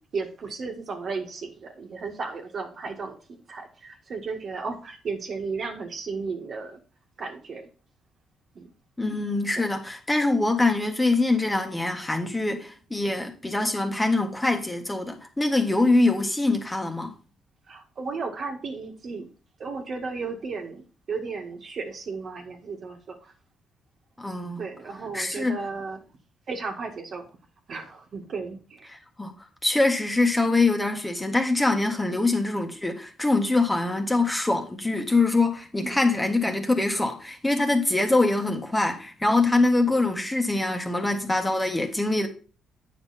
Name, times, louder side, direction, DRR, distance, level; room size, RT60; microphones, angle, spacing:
voice 1, 0.0-3.2 3.5-6.8 7.2-7.7 8.6-8.7 9.6-9.7 17.7-19.3 19.6-20.8 21.1-23.3 24.6-26.0 26.5-27.3 27.7-28.9 32.1-32.2 35.8-36.0 39.9-40.0, right 4 dB, 55° right, 1.7 m, -34 dB
voice 2, 9.0-17.1 24.2-24.6 25.1-25.6 29.2-29.3 29.6-42.3, left 2 dB, 10° left, 1.4 m, -24 dB
8.7 x 5.8 x 4.2 m
cardioid pair, 90°, 0 cm